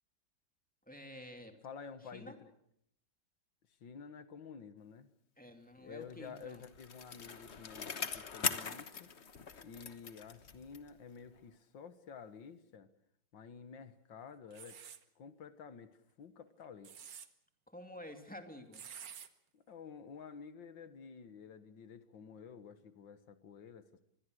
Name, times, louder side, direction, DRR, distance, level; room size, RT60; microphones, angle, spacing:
voice 1, 0.9-1.6 2.1-2.4 5.4-6.6 17.7-18.8, left 1 dB, 5° left, 5 dB, 2.6 m, -50 dB
voice 2, 1.6-2.5 3.8-5.1 5.8-9.1 9.6-12.9 13.3-14.8 15.2-16.9 19.5-24.1, left 6 dB, 90° left, 12 dB, 2.2 m, -51 dB
Bicycle, 6.1-11.0 11.4-11.5, left 6 dB, 40° left, 1.3 m, -41 dB
sound 1, 14.5-15.0 16.6-17.3 18.7-19.3, right 8 dB, 55° right, 1.6 m, -49 dB
25.5 x 21.0 x 6.5 m, 0.73 s
omnidirectional pair, 2.0 m